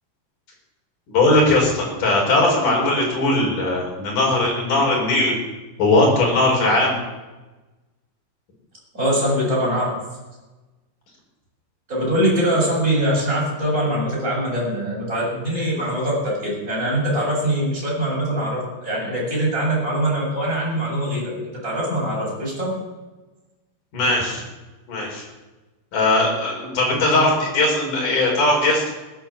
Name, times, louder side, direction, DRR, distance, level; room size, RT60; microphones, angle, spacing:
voice 1, 1.1-5.4 5.8-7.0 23.9-24.4 24.9-25.3 25.9-28.9, left 2 dB, 40° left, -1 dB, 5.7 m, -19 dB
voice 2, 8.9-9.9 11.9-21.3 21.6-22.7, right 1 dB, 15° right, -4 dB, 7.3 m, -22 dB
18.0 x 10.0 x 7.4 m, 1.2 s
omnidirectional pair, 5.9 m